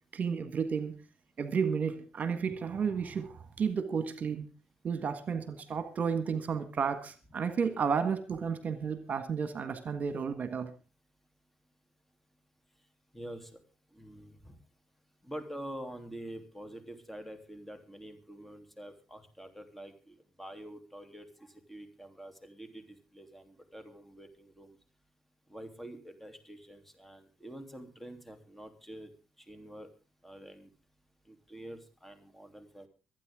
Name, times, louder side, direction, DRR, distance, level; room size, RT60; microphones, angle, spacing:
voice 1, 0.1-0.9 1.4-4.5 4.8-10.7, right 6 dB, 55° right, 10 dB, 1.6 m, -32 dB
voice 2, 13.1-13.6 13.9-14.6 15.2-24.8 25.5-29.1 29.4-29.9 30.2-30.7 31.2-32.9, right 1 dB, 5° left, 7 dB, 3.2 m, -47 dB
25.0 x 9.3 x 3.7 m, 0.33 s
supercardioid pair, 55°, 3 cm